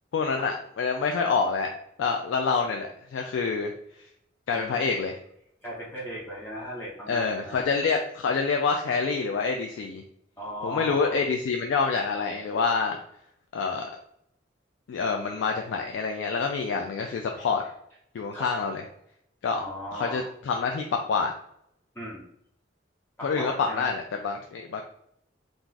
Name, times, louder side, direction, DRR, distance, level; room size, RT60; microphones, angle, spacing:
voice 1, 0.1-1.7 2.0-3.7 4.5-5.2 7.1-10.0 10.6-13.0 13.5-13.9 14.9-17.6 18.1-18.8 19.4-19.6 19.9-21.3 23.2-24.8, left 5 dB, 85° left, 2 dB, 0.3 m, -27 dB
voice 2, 4.5-4.8 5.6-7.6 10.4-11.2 17.1-17.2 18.3-18.5 19.5-20.3 22.0-22.3 23.2-23.9, equal, 10° left, -6 dB, 0.5 m, -37 dB
2.5 x 2.3 x 3.8 m, 0.73 s
head